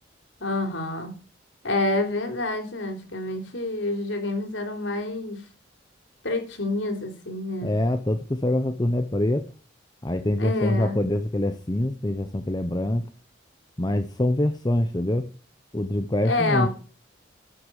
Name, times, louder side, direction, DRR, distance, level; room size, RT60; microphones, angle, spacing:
voice 1, 0.4-1.1 1.6-5.4 6.2-7.8 10.4-11.0 16.2-16.7, left 2 dB, 80° left, 4 dB, 3.9 m, -28 dB
voice 2, 7.6-9.4 10.0-13.1 13.8-15.3 15.7-16.7, left 1 dB, 20° left, 8 dB, 0.8 m, -25 dB
11.5 x 7.9 x 6.6 m, 0.37 s
head